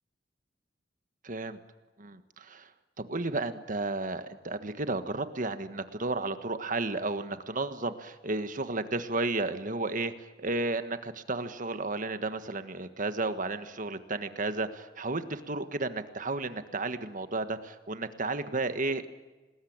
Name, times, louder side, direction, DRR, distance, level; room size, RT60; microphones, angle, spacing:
voice 1, 1.2-1.6 2.0-2.7 3.0-10.1 10.4-19.1, right 3 dB, 45° right, 10 dB, 1.6 m, -33 dB
26.5 x 20.0 x 8.9 m, 1.2 s
head